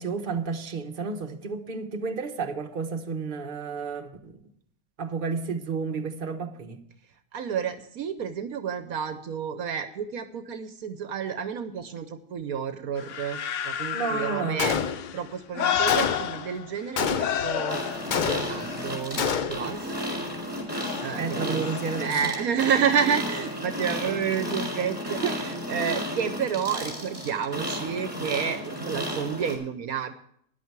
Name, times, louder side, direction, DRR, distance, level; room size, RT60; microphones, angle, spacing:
voice 1, 0.0-4.4 5.0-6.8 13.9-14.8 21.1-22.3 25.2-25.4, right 5 dB, 35° right, 1.2 m, -31 dB
voice 2, 7.3-14.8 15.1-20.0 21.0-21.7 22.0-30.1, right 7 dB, 70° right, 1.2 m, -30 dB
sound 1, 13.0-16.9 17.2-19.7 20.7-22.2 22.7-22.8, left 9 dB, 60° left, 0.9 m, -31 dB
Gunshot gunfire, 14.6-15.3 15.9-16.4 17.0-17.6 18.1-18.8 19.2-19.8, left 7 dB, 85° left, 0.4 m, -28 dB
sound 2, 17.7-29.5, equal, 15° right, 3.7 m, -33 dB
14.0 x 10.5 x 4.6 m
omnidirectional pair, 1.6 m